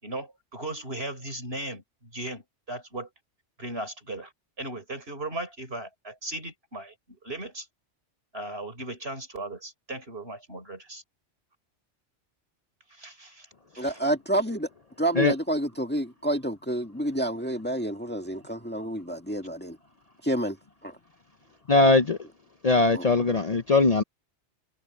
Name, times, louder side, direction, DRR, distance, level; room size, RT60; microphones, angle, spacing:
voice 1, 0.0-3.1 3.6-4.3 4.6-7.7 8.3-11.0 12.9-13.5 13.7-14.0, right 2 dB, 60° right, 5.7 m, -37 dB
voice 2, 13.8-14.7 15.0-19.8 20.2-20.6 20.8-21.0 22.9-23.2, right 1 dB, 10° left, 1.8 m, -29 dB
voice 3, 21.7-22.2 22.6-24.0, left 3 dB, 40° left, 0.8 m, -20 dB
omnidirectional pair, 1.2 m